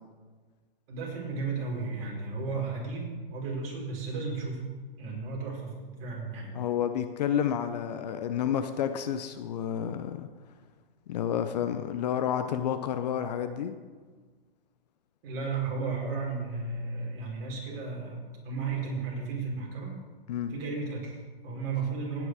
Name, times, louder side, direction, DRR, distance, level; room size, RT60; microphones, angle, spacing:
voice 1, 0.9-4.7 5.0-6.5 15.2-20.0 20.5-22.3, right 4 dB, 35° right, -3 dB, 5.3 m, -34 dB
voice 2, 6.5-10.3 11.1-13.7 20.3-20.5, left 9 dB, 45° left, 9 dB, 0.9 m, -30 dB
17.5 x 9.6 x 5.0 m, 1.4 s
figure-of-eight pair, 125°, 29 cm